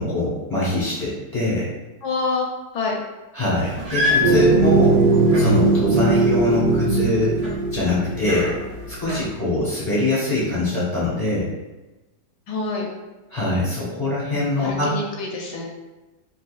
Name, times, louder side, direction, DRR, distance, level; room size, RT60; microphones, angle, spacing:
voice 1, 0.0-1.7 3.3-5.0 5.3-7.3 7.7-8.5 8.9-11.5 13.3-14.9, left 1 dB, 15° left, -9 dB, 0.8 m, -23 dB
voice 2, 2.0-2.5 2.7-3.0 12.5-12.9 14.6-15.7, left 3 dB, 75° left, -1 dB, 1.1 m, -26 dB
sound 1, 3.5-9.3, left 3 dB, 30° right, 0.7 m, -29 dB
sound 2, 4.2-8.8, right 3 dB, 80° right, 1.2 m, -19 dB
3.8 x 2.7 x 2.4 m, 1.1 s
omnidirectional pair, 1.9 m